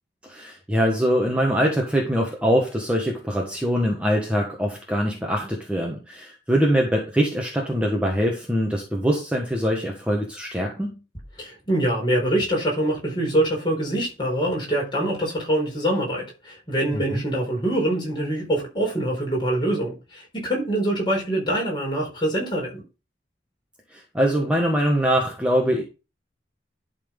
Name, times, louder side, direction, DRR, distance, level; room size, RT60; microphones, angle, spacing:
voice 1, 0.2-11.0 16.9-17.2 23.9-25.8, equal, 5° right, 1.4 m, -23 dB
voice 2, 11.4-22.8, right 1 dB, 25° left, 4.5 m, -24 dB
11.5 x 4.3 x 5.3 m
head